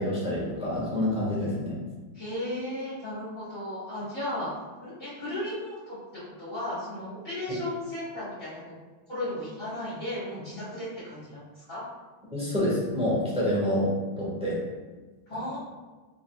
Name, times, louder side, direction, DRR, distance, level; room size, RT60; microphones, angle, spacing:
voice 1, 0.0-1.8 12.3-13.9 14.2-14.6, left 1 dB, 5° right, -7 dB, 1.0 m, -27 dB
voice 2, 2.1-4.5 4.8-6.0 6.2-8.8 9.1-11.8 15.3-15.6, left 1 dB, 25° left, -12 dB, 1.2 m, -35 dB
4.2 x 3.9 x 2.3 m, 1.3 s
omnidirectional pair, 2.3 m